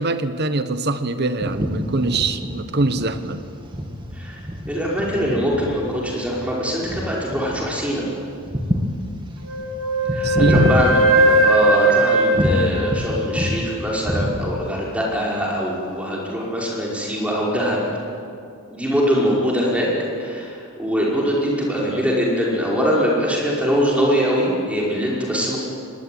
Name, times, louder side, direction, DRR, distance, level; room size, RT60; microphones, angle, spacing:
voice 1, 0.0-3.4 10.2-10.8, right 2 dB, 45° right, 10 dB, 1.2 m, -23 dB
sound 1, 1.4-11.8 12.3-13.7 13.9-14.8, equal, 20° right, 2.5 m, -26 dB
voice 2, 4.7-8.1 10.1-17.9 18.7-19.9 20.2-25.6, equal, 5° right, -4 dB, 5.4 m, -22 dB
Wind instrument woodwind instrument, 9.4-13.7, right 1 dB, 90° right, 5.6 m, -19 dB
24.0 x 20.0 x 9.5 m, 2.4 s
head